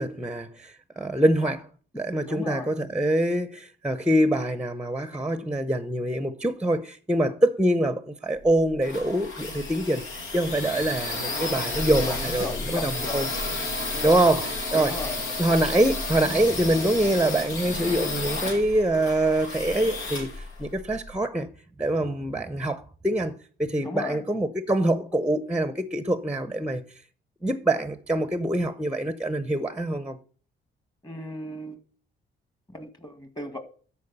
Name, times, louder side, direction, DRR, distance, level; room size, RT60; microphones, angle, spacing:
voice 1, 0.0-1.7 1.9-10.0 10.3-13.3 14.0-15.0 15.4-21.5 21.8-26.8 27.4-30.2, right 1 dB, 5° right, 0.7 m, -25 dB
voice 2, 2.2-2.7 12.0-13.4 13.8-14.3 14.7-15.2 23.8-24.2 31.0-31.8 32.7-33.6, left 2 dB, 20° left, 2.1 m, -36 dB
sound 1, 8.4-21.2, left 2 dB, 90° left, 2.4 m, -32 dB
13.0 x 4.6 x 5.4 m
cardioid pair, 90°, 20 cm